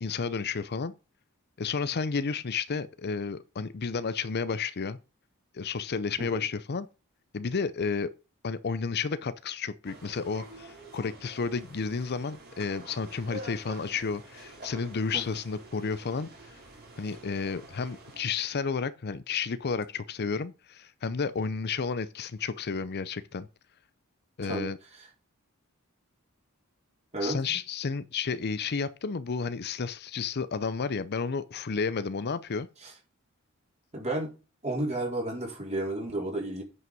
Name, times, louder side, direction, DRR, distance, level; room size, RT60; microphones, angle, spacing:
voice 1, 0.0-0.9 1.6-5.0 5.5-6.9 7.3-8.1 8.4-16.6 17.0-23.5 24.4-24.8 27.2-32.7, left 5 dB, 50° left, 0.6 m, -32 dB
sound 1, 9.8-18.2, right 1 dB, 45° right, 4.1 m, -47 dB
voice 2, 27.1-27.6 32.8-32.9 33.9-34.3 34.6-36.6, right 1 dB, 30° right, 4.1 m, -32 dB
9.4 x 5.6 x 5.3 m
head